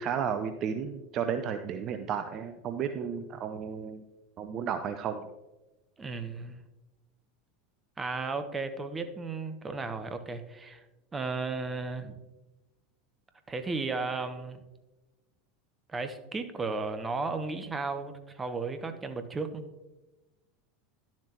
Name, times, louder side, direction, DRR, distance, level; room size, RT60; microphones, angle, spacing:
voice 1, 0.0-4.0 4.4-5.3, right 7 dB, 40° right, 8 dB, 0.5 m, -33 dB
voice 2, 6.0-6.6 8.0-10.8 11.1-12.2 13.5-14.6 15.9-19.7, right 3 dB, 20° right, 9 dB, 0.9 m, -34 dB
11.0 x 7.4 x 2.9 m, 1.1 s
figure-of-eight pair, 80°, 0 cm